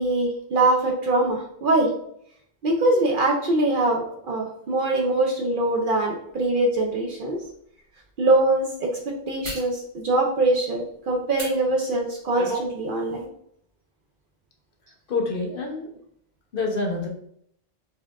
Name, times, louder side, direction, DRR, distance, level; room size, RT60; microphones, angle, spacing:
voice 1, 0.0-1.9 2.6-7.4 8.2-13.3, right 2 dB, 60° right, 0 dB, 0.6 m, -23 dB
sound 1, 7.3-7.5 9.4-9.7 11.3-11.5 12.1-12.7 13.1-13.2, right 2 dB, 25° right, 1.3 m, -33 dB
voice 2, 15.1-15.9 16.5-17.1, left 3 dB, 55° left, 1 dB, 0.8 m, -26 dB
4.4 x 2.4 x 2.3 m, 0.68 s
omnidirectional pair, 1.2 m